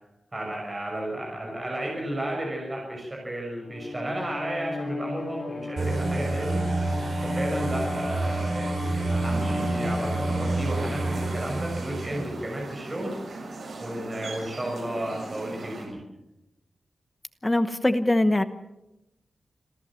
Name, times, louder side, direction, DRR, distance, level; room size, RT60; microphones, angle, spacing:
voice 1, 0.3-6.6 7.2-13.5 13.8-16.0, right 1 dB, 25° right, -1 dB, 6.2 m, -33 dB
Bowed string instrument, 3.6-12.0, left 3 dB, 45° left, 3.2 m, -35 dB
sound 1, 5.8-12.2, right 3 dB, 65° right, 6.4 m, -29 dB
sound 2, 9.2-15.8, right 2 dB, 85° right, 7.6 m, -39 dB
voice 2, 17.4-18.4, left 1 dB, 15° left, 10 dB, 1.0 m, -22 dB
27.0 x 15.0 x 7.5 m, 0.92 s
wide cardioid pair, 175°, 0 cm